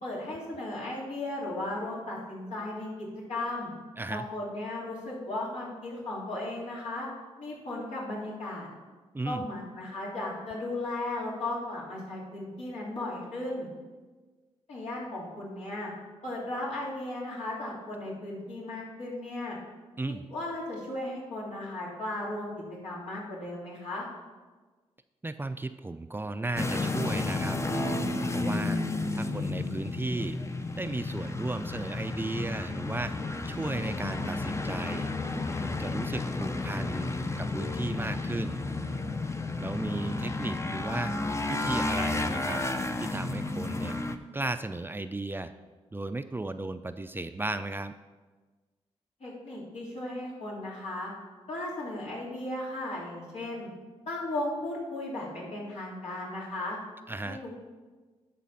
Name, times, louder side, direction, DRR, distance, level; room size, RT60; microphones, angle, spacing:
voice 1, 0.0-3.7 4.1-7.1 7.4-8.7 9.2-13.7 14.7-15.9 16.2-19.6 20.3-22.5 22.8-24.0 49.2-51.1 51.5-53.7 54.1-56.8 57.2-57.6, left 2 dB, 80° left, -6 dB, 3.2 m, -36 dB
voice 2, 9.1-9.5 20.0-20.2 25.2-27.6 28.3-28.8 29.1-30.4 30.8-33.2 33.5-35.1 35.5-37.1 37.4-38.6 39.6-41.2 41.5-42.6 43.0-44.0 44.3-45.5 45.9-47.9 57.1-57.4, right 2 dB, 20° right, 10 dB, 0.4 m, -35 dB
sound 1, 26.5-44.2, left 3 dB, 25° left, 0.6 m, -32 dB
sound 2, 27.7-33.0, right 2 dB, 50° left, 1.7 m, -41 dB
11.5 x 4.2 x 5.6 m, 1.3 s
cardioid pair, 70°, 11 cm